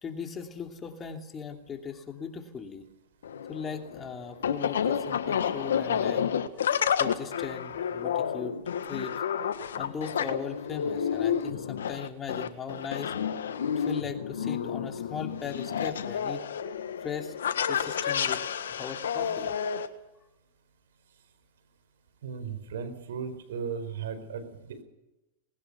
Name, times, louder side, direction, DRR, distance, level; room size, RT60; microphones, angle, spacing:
voice 1, 0.0-2.9 3.5-6.3 6.5-6.6 7.0-9.2 9.8-13.1 13.8-16.4 17.0-17.3 17.7-19.5, left 6 dB, 25° left, 4 dB, 2.8 m, -38 dB
sound 1, 3.2-19.9, left 8 dB, 80° left, 1.6 m, -30 dB
voice 2, 22.2-24.8, right 6 dB, 75° right, 10 dB, 4.8 m, -36 dB
20.5 x 19.0 x 6.9 m, 0.95 s
hypercardioid pair, 110°, 0 cm